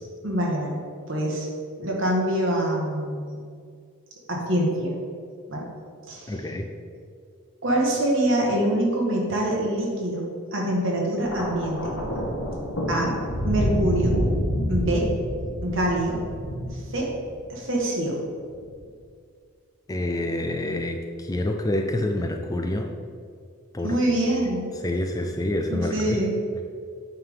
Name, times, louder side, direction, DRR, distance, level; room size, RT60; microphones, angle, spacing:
voice 1, 0.2-0.7 1.1-1.5 1.8-3.4 4.3-4.9 5.5-5.6 6.1-6.3 7.6-10.3 10.5-11.9 12.9-13.1 13.4-14.1 14.7-15.1 15.6-16.2 16.7-17.1 17.5-18.2 23.8-24.7 25.7-26.4, right 1 dB, 65° right, -2 dB, 1.6 m, -25 dB
voice 2, 6.3-6.7 19.9-22.9 23.7-24.0 24.8-26.2 26.6-26.7, left 1 dB, 15° left, 4 dB, 0.4 m, -27 dB
Thunder, 11.2-17.6 18.5-18.8, equal, 80° left, 1.4 m, -28 dB
8.5 x 3.6 x 5.5 m, 2.2 s
head